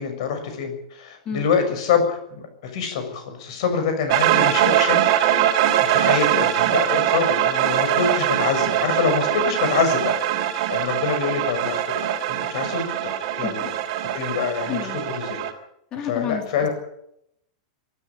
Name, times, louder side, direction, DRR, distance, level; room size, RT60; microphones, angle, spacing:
voice 1, 0.0-2.2 2.7-5.1 5.9-10.0 10.4-11.8 12.1-12.2 12.5-13.6 14.1-15.4 16.0-16.7, left 6 dB, 55° left, 6 dB, 6.6 m, -25 dB
sound 1, 4.1-15.5, right 11 dB, 45° right, 3.2 m, -22 dB
voice 2, 14.7-15.1 15.9-16.7, left 7 dB, 20° left, 3 dB, 3.0 m, -31 dB
24.0 x 13.5 x 8.7 m, 0.76 s
supercardioid pair, 170°, 4 cm